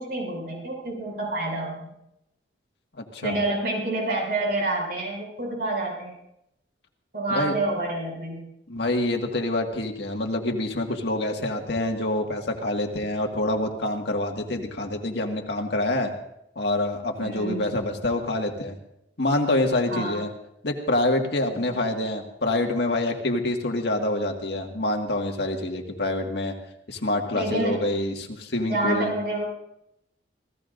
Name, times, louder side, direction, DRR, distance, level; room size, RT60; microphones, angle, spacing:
voice 1, 0.0-1.9 3.2-6.2 7.1-8.4 17.2-17.6 19.9-20.2 21.7-21.8 27.3-27.8 28.7-29.4, right 2 dB, 55° right, -2 dB, 6.6 m, -28 dB
voice 2, 3.0-3.4 7.3-7.5 8.7-16.1 16.6-18.8 19.2-20.3 20.6-26.5 26.9-29.1, left 1 dB, 65° left, 2 dB, 1.9 m, -26 dB
28.0 x 17.5 x 2.6 m, 0.82 s
head